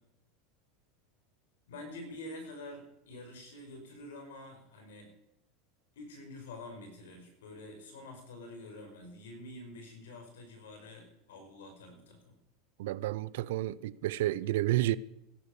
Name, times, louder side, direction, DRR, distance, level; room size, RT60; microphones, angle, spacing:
voice 1, 1.7-5.1 6.0-12.3, left 2 dB, 80° left, 5.4 m, -47 dB
voice 2, 12.8-15.0, right 15 dB, 70° right, 0.6 m, -30 dB
16.5 x 11.5 x 7.0 m
hypercardioid pair, 90°, 0 cm